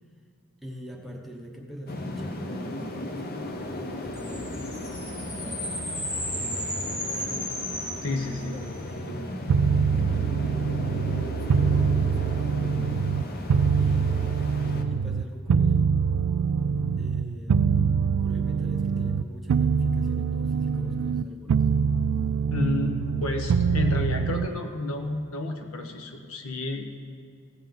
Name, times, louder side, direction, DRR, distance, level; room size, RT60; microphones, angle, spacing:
voice 1, 0.6-3.4 3.8-5.8 6.3-7.5 8.2-9.5 9.9-10.2 10.9-13.5 13.8-14.4 14.9-15.9 17.0-17.6 18.2-21.6, equal, ahead, 0 dB, 0.8 m, -44 dB
sound 1, 1.9-14.8, left 1 dB, 45° left, 0.7 m, -36 dB
sound 2, 4.1-8.7, equal, 20° left, 2.9 m, -34 dB
voice 2, 8.0-8.5 9.0-9.3 22.5-26.9, left 2 dB, 75° left, 3 dB, 1.1 m, -30 dB
sound 3, 9.5-13.2 13.5-19.2 19.5-21.2 21.5-24.5, right 6 dB, 75° right, 0.3 m, -24 dB
15.5 x 7.3 x 3.9 m, 2.2 s
head